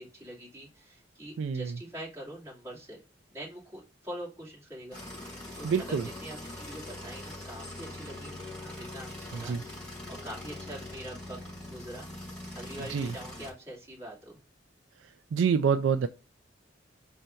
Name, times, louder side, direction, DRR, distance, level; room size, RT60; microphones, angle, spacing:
voice 1, 0.0-3.0 3.3-5.0 5.6-9.9 10.2-11.4 11.7-12.1 12.5-14.4, right 1 dB, 15° right, 2.5 m, -44 dB
voice 2, 1.4-1.8 5.6-6.1 9.3-9.6 12.9-13.1 15.3-16.1, right 6 dB, 85° right, 0.4 m, -27 dB
sound 1, 4.9-13.5, left 1 dB, 5° left, 2.8 m, -42 dB
4.5 x 2.7 x 4.3 m
head